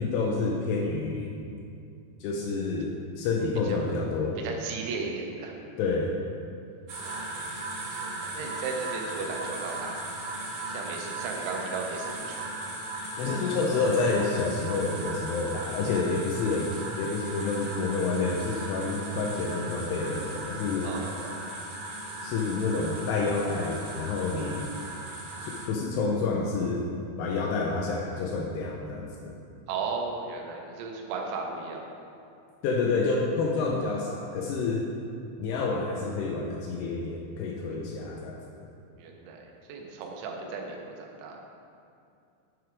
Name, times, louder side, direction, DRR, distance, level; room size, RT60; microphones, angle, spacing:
voice 1, 0.0-1.3 2.2-4.4 5.8-6.2 13.2-20.9 22.2-24.7 25.4-26.8 27.2-29.3 32.6-34.8 35.4-38.7, left 3 dB, 85° left, -1 dB, 2.5 m, -29 dB
voice 2, 4.4-5.5 7.0-7.5 8.0-10.0 10.7-12.7 20.8-21.3 29.7-32.0 37.7-38.3 39.0-41.4, right 4 dB, 85° right, 1 dB, 3.2 m, -36 dB
sound 1, 6.9-25.7, right 2 dB, 65° right, 2.6 m, -37 dB
7.8 x 4.5 x 4.9 m, 2.5 s
omnidirectional pair, 5.3 m